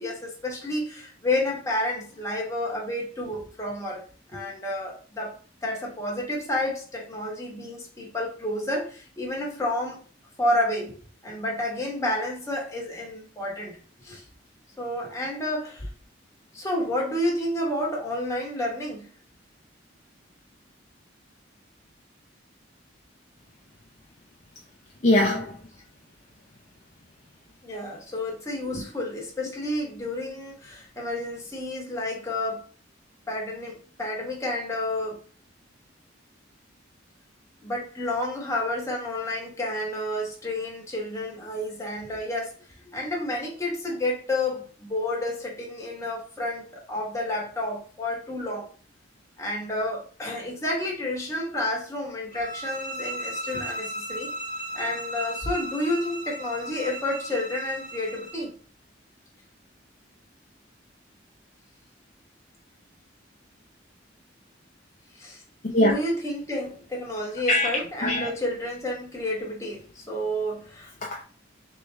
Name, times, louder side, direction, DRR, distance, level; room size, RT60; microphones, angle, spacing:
voice 1, 0.0-4.0 4.3-5.3 5.6-10.0 10.4-11.0 11.2-14.2 14.8-15.9 16.5-19.1 27.6-32.6 33.3-35.2 37.6-42.5 42.9-48.7 49.4-54.3 54.7-58.5 65.1-65.4 65.7-70.9, left 1 dB, 15° left, 1.2 m, -30 dB
voice 2, 25.0-25.6 28.7-28.8 65.6-65.9 67.5-67.7 68.0-68.3 71.0-71.2, left 1 dB, 40° left, 0.6 m, -22 dB
sound 1, 52.3-58.5, right 1 dB, 50° right, 1.2 m, -36 dB
3.8 x 3.0 x 3.3 m
head